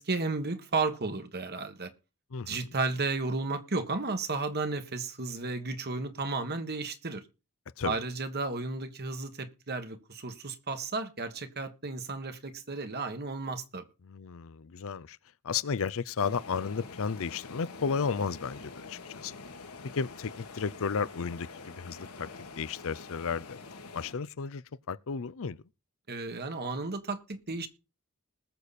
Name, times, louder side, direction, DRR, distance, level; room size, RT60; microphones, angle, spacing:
voice 1, 0.0-1.9 2.5-7.2 7.8-13.8 26.1-27.7, right 3 dB, 50° right, 1.6 m, -33 dB
voice 2, 2.3-2.7 7.8-8.0 14.0-15.2 15.4-19.4 19.9-22.3 22.5-23.6 23.9-25.6, left 5 dB, 65° left, 0.6 m, -33 dB
sound 1, 16.2-24.1, left 4 dB, 85° left, 2.0 m, -46 dB
20.0 x 6.8 x 4.2 m
head